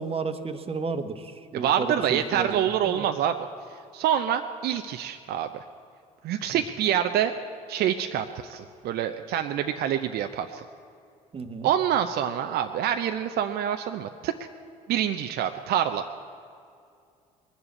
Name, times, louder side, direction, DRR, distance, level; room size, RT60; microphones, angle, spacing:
voice 1, 0.0-2.7 2.9-3.0 6.5-6.6 11.3-11.7, right 4 dB, 30° right, 9 dB, 1.3 m, -32 dB
voice 2, 1.5-3.5 3.9-5.6 6.2-7.3 7.7-10.6 11.6-14.3 14.9-16.0, right 10 dB, 55° right, 7 dB, 0.7 m, -26 dB
20.5 x 7.2 x 8.6 m, 2.4 s
hypercardioid pair, 55°, 19 cm